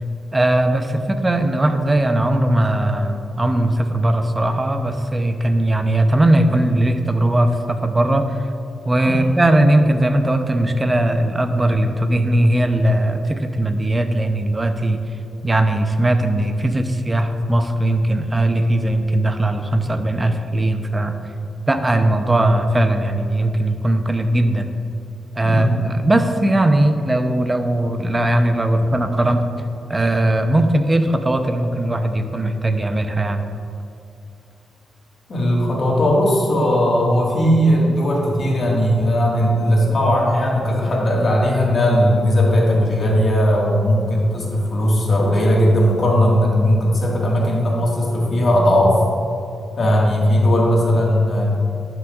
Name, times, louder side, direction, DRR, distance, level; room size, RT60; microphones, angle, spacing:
voice 1, 0.3-8.2 8.9-15.0 15.4-21.2 21.7-24.7 25.4-29.4 29.9-33.4, right 1 dB, 25° right, 7 dB, 0.6 m, -19 dB
voice 2, 35.3-49.0 49.8-51.6, equal, 55° left, -3 dB, 1.7 m, -17 dB
11.0 x 6.0 x 2.4 m, 2.7 s
cardioid pair, 75°, 0 cm